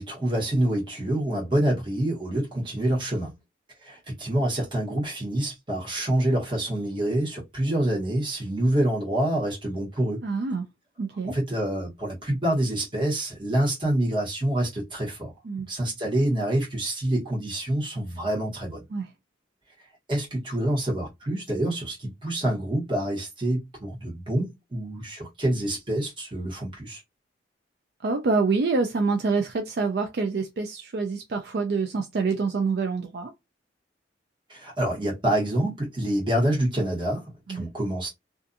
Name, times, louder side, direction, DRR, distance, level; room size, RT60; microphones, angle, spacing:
voice 1, 0.0-3.3 3.8-10.2 11.2-15.3 15.7-18.8 20.1-27.0 34.5-38.1, right 1 dB, 25° right, 1.2 m, -27 dB
voice 2, 10.2-10.6 11.0-11.3 15.5-15.7 18.9-19.1 28.0-33.3 37.5-37.7, right 4 dB, 60° right, 0.4 m, -26 dB
2.5 x 2.4 x 2.5 m
head